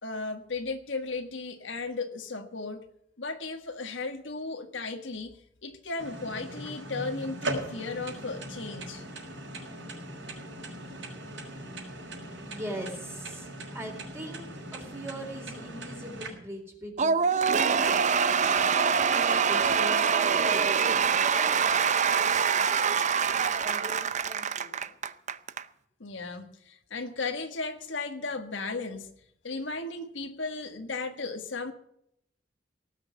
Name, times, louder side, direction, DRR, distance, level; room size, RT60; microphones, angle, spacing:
voice 1, 0.0-2.8 3.2-9.0 26.0-29.1 29.4-31.7, left 3 dB, 80° left, 6 dB, 1.6 m, -35 dB
sound 1, 6.0-16.3, right 1 dB, 75° right, 5.7 m, -39 dB
voice 2, 12.4-21.5 22.0-24.9, right 1 dB, 15° right, 1 dB, 4.0 m, -42 dB
Cheering / Applause / Crowd, 17.0-25.6, right 6 dB, 40° right, 0.6 m, -25 dB
18.5 x 6.6 x 9.3 m, 0.74 s
head